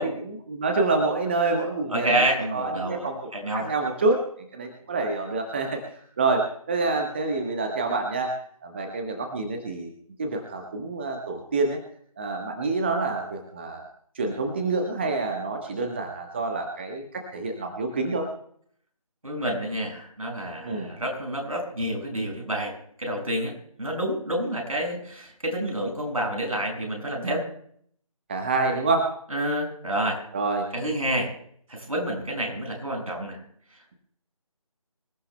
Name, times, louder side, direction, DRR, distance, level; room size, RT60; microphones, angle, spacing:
voice 1, 0.0-2.1 2.5-3.2 3.5-4.2 4.5-5.8 6.2-9.9 10.2-11.8 12.2-13.8 14.1-18.3 20.6-20.9 28.3-29.2 30.3-30.7, right 3 dB, 20° right, 3 dB, 1.2 m, -27 dB
voice 2, 1.9-3.1 3.3-3.7 19.2-23.5 23.8-27.4 29.3-30.2 30.7-31.3 31.7-33.4, right 1 dB, 70° right, 2 dB, 6.0 m, -28 dB
25.5 x 14.5 x 2.2 m, 0.62 s
figure-of-eight pair, 160°, 19 cm